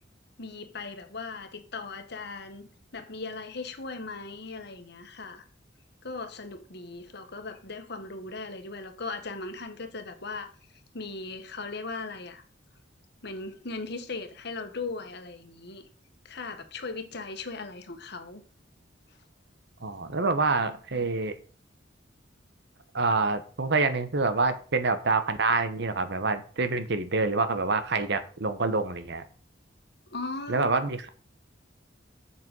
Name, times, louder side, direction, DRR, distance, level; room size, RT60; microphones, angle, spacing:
voice 1, 0.4-5.4 6.0-10.5 10.9-12.4 13.2-15.9 16.2-18.4 30.1-30.7, left 3 dB, 60° left, 1.5 m, -38 dB
voice 2, 19.8-21.3 22.9-29.2 30.5-31.1, right 3 dB, 65° right, 1.1 m, -26 dB
7.7 x 5.9 x 5.4 m
head